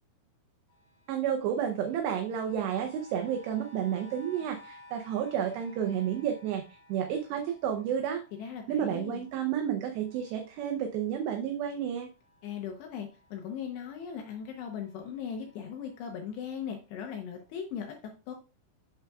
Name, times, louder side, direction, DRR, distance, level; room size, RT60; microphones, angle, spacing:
sound 1, 0.7-11.7 12.0-16.7 17.3-17.4, left 1 dB, 10° left, 4.5 m, -57 dB
voice 1, 1.1-6.6 6.9-8.2 8.7-12.1, right 9 dB, 80° right, 4 dB, 2.5 m, -31 dB
voice 2, 8.4-9.3 12.4-18.0 18.3-18.4, left 7 dB, 75° left, 3 dB, 2.6 m, -38 dB
8.1 x 7.9 x 2.3 m, 0.31 s
omnidirectional pair, 5.6 m